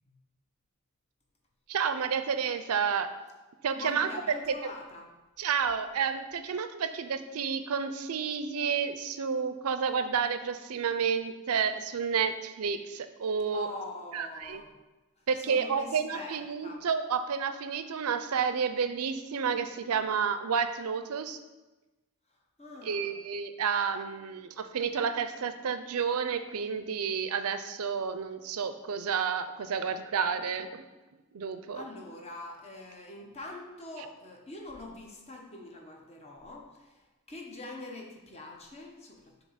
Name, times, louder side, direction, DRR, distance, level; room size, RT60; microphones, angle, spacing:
voice 1, 1.7-3.1 3.6-4.1 4.5-4.6 5.4-13.7 14.1-14.6 15.3-21.4 22.8-30.9 31.3-31.9 34.0-34.1, right 6 dB, 75° right, 10 dB, 0.5 m, -30 dB
voice 2, 3.8-5.1 13.5-14.7 15.4-16.8 22.6-23.1 31.7-37.0 37.3-39.3, left 2 dB, 30° left, 0 dB, 0.9 m, -43 dB
6.8 x 2.9 x 5.7 m, 1.1 s
head